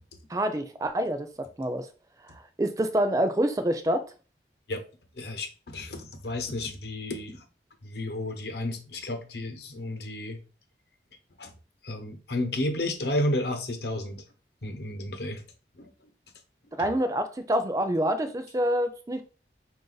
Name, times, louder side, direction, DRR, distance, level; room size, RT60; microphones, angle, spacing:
voice 1, 0.3-1.9 2.2-4.1 16.8-19.2, right 1 dB, 20° right, 0.4 m, -27 dB
voice 2, 5.2-7.4 7.8-10.4 11.4-11.5 11.8-14.2 14.6-15.4 15.8-15.9, left 1 dB, 70° left, 0.9 m, -32 dB
4.9 x 2.6 x 3.9 m
head